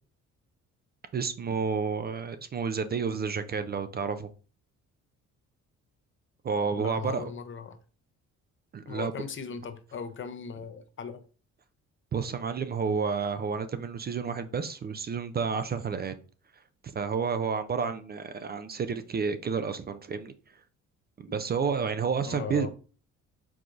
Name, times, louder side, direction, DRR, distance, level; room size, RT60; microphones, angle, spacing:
voice 1, 1.1-4.3 6.4-7.3 8.7-9.1 12.1-16.1 16.9-20.3 21.2-22.7, right 5 dB, 35° right, 0.4 m, -30 dB
voice 2, 6.8-7.8 8.9-11.2 21.3-21.4 22.3-22.7, left 6 dB, 40° left, 0.6 m, -38 dB
4.8 x 3.8 x 2.5 m
cardioid pair, 90°, 30 cm